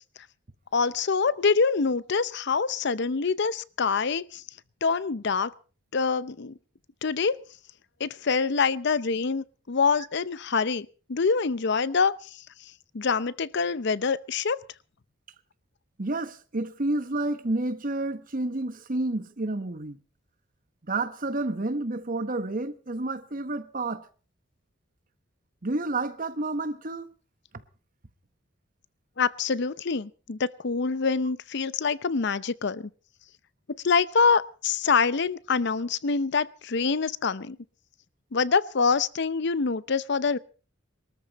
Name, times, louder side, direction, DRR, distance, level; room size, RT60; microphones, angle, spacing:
voice 1, 0.7-4.4 4.8-5.5 5.9-6.5 7.0-7.4 8.0-12.4 12.9-14.6 29.2-32.9 33.8-37.6 38.3-40.4, left 5 dB, 60° left, 0.7 m, -25 dB
voice 2, 16.0-20.0 20.9-24.1 25.6-27.1, right 2 dB, 45° right, 1.1 m, -30 dB
22.5 x 13.5 x 4.1 m
head